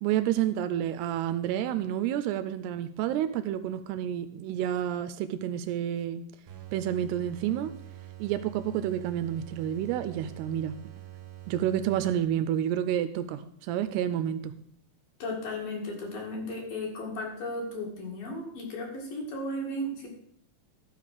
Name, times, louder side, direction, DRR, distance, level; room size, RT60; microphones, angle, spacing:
voice 1, 0.0-6.2 6.7-7.7 8.2-10.7 11.5-14.5, right 11 dB, 85° right, 2.5 m, -29 dB
sound 1, 6.5-12.6, right 14 dB, 60° right, 2.4 m, -46 dB
voice 2, 15.2-20.1, left 1 dB, 60° left, 3.6 m, -35 dB
12.5 x 5.2 x 6.5 m
omnidirectional pair, 4.8 m